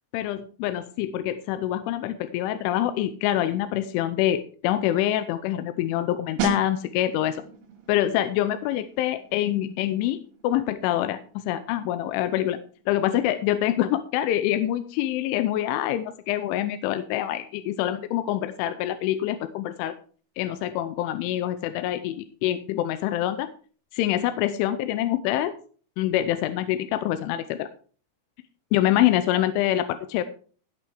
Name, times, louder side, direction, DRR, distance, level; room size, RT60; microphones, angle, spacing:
voice 1, 0.1-7.4 7.9-12.6 12.9-19.9 20.4-23.5 23.9-25.5 26.0-27.7 28.7-30.2, left 12 dB, 80° left, 11 dB, 3.0 m, -25 dB
sound 1, 6.4-16.9 17.2-17.4, right 5 dB, 85° right, 4.7 m, -39 dB
16.0 x 6.6 x 4.8 m, 0.41 s
omnidirectional pair, 5.8 m